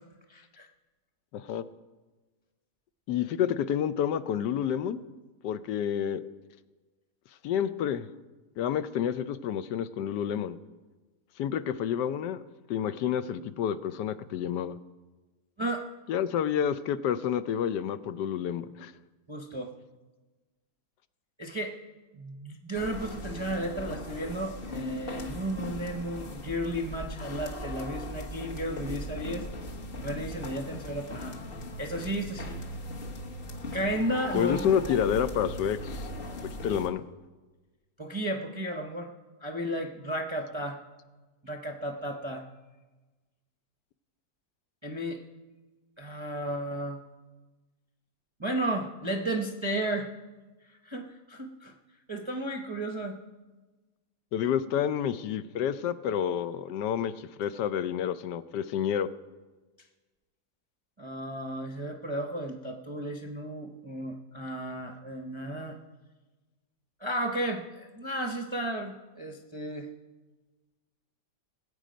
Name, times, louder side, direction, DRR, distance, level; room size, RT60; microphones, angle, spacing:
voice 1, 0.3-0.7 15.6-15.9 19.3-19.7 21.4-21.8 22.1-29.5 30.0-31.4 31.8-32.6 33.7-35.0 38.0-39.1 39.4-40.8 41.4-42.5 44.8-45.2 46.0-47.0 48.4-50.1 50.8-51.7 52.1-53.2 61.0-65.8 67.0-69.9, right 1 dB, 30° right, 3 dB, 0.5 m, -33 dB
voice 2, 1.3-1.6 3.1-5.0 5.4-6.2 7.4-8.1 8.6-10.6 11.4-12.4 12.7-14.8 16.1-18.9 34.3-36.1 36.6-37.0 54.3-59.1, left 9 dB, 85° left, 13 dB, 1.2 m, -29 dB
sound 1, 22.7-36.9, left 1 dB, 40° left, 1.3 m, -39 dB
20.0 x 8.3 x 5.1 m, 1.2 s
omnidirectional pair, 1.8 m